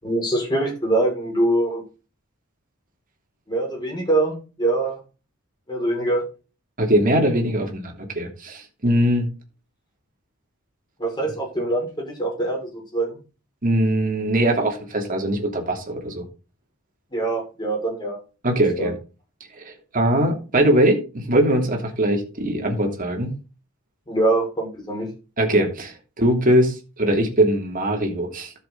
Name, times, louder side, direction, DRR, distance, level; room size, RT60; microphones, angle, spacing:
voice 1, 0.0-1.8 3.5-5.0 5.7-6.2 11.0-13.2 17.1-18.2 18.8-18.9 24.1-25.1, right 2 dB, 20° left, -1 dB, 5.8 m, -23 dB
voice 2, 6.8-9.3 13.6-16.2 18.4-18.9 19.6-23.3 25.4-28.5, right 1 dB, 40° right, 2 dB, 3.0 m, -21 dB
12.5 x 7.0 x 4.0 m, 0.32 s
head